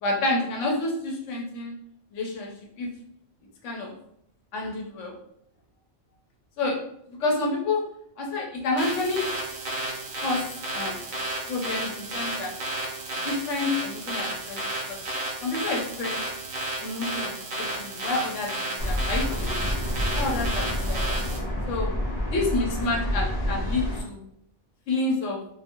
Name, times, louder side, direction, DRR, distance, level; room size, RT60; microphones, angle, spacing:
voice 1, 0.0-1.7 2.1-2.5 2.8-2.9 3.6-3.9 4.5-5.1 6.6-6.8 7.2-7.8 8.2-9.3 10.2-10.4 10.7-11.0 11.5-12.5 13.2-15.0 15.4-16.2 16.8-19.6 20.1-21.0 21.7-21.9 22.3-24.2 24.9-25.4, left 2 dB, 85° left, 0 dB, 1.0 m, -29 dB
Brig Alarm Engaged, 8.8-21.4, right 1 dB, 50° right, 0.7 m, -32 dB
sound 1, 18.8-24.0, equal, 35° left, 0.8 m, -28 dB
2.6 x 2.5 x 2.7 m, 0.71 s
omnidirectional pair, 1.3 m